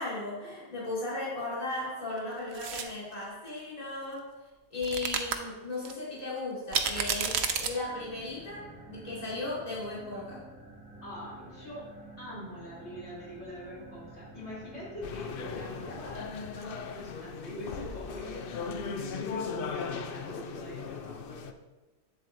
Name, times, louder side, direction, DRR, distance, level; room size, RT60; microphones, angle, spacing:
voice 1, 0.0-4.3 4.7-10.4, left 2 dB, 35° left, -8 dB, 2.4 m, -36 dB
sound 1, 2.5-2.9 4.8-5.4 5.9-6.0 6.7-7.7, right 7 dB, 75° right, 0.9 m, -30 dB
sound 2, 7.4-17.9, right 2 dB, 5° right, 1.0 m, -50 dB
voice 2, 11.0-11.9 12.2-21.5, left 1 dB, 80° left, -8 dB, 3.1 m, -43 dB
sound 3, 15.0-21.5, left 5 dB, 65° left, 0.7 m, -38 dB
8.5 x 7.4 x 2.6 m, 1.1 s
omnidirectional pair, 1.1 m